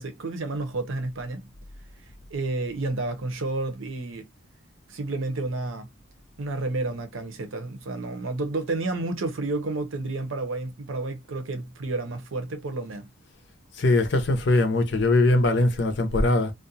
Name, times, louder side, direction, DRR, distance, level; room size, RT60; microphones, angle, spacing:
voice 1, 0.0-1.5 2.3-4.3 4.9-5.9 6.4-13.1, right 2 dB, 75° right, 0.7 m, -30 dB
voice 2, 13.8-16.5, left 2 dB, 60° left, 0.6 m, -21 dB
2.5 x 2.2 x 2.6 m
head